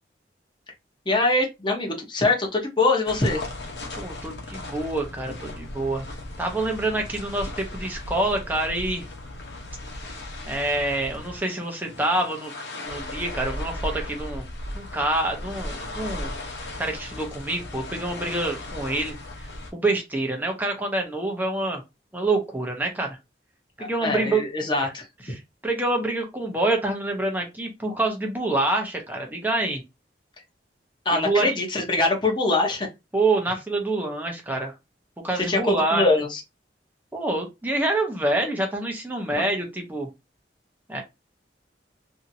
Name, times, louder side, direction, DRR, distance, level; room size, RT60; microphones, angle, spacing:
voice 1, 1.1-3.5 23.8-25.1 31.0-32.9 35.4-36.4, left 2 dB, 25° left, 0.9 m, -23 dB
sound 1, 3.1-19.7, left 1 dB, 70° left, 0.9 m, -36 dB
voice 2, 4.0-6.0 6.4-9.0 10.5-12.5 12.8-14.5 14.7-16.3 16.8-19.1 19.7-21.8 22.1-23.2 23.8-24.4 24.8-24.9 25.3-29.8 31.1-31.5 33.1-34.7 35.2-36.1 37.1-40.1 40.9-41.0, right 2 dB, 10° right, 0.8 m, -26 dB
2.7 x 2.7 x 2.7 m
head